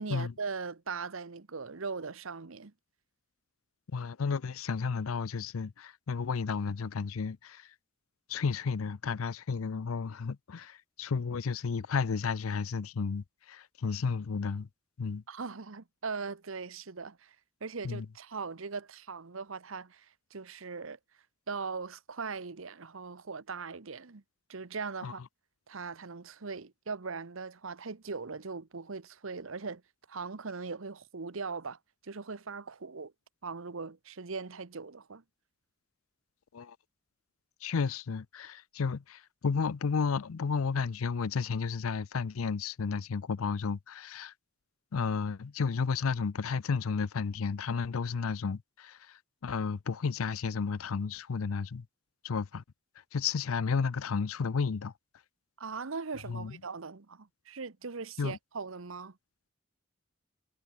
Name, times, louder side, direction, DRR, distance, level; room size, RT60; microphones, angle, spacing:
voice 1, 0.0-2.7 15.3-17.4 17.6-21.0 21.5-24.2 24.5-25.2 25.7-29.8 30.1-31.8 32.0-33.1 33.4-35.2 55.6-59.2, right 4 dB, 70° right, 1.0 m, -40 dB
voice 2, 3.9-7.7 8.3-14.7 15.0-15.2 17.8-18.1 25.0-25.1 36.5-36.8 37.6-44.3 44.9-51.8 52.2-52.6 53.1-54.9 56.3-56.6 58.2-58.4, left 5 dB, 85° left, 0.5 m, -32 dB
head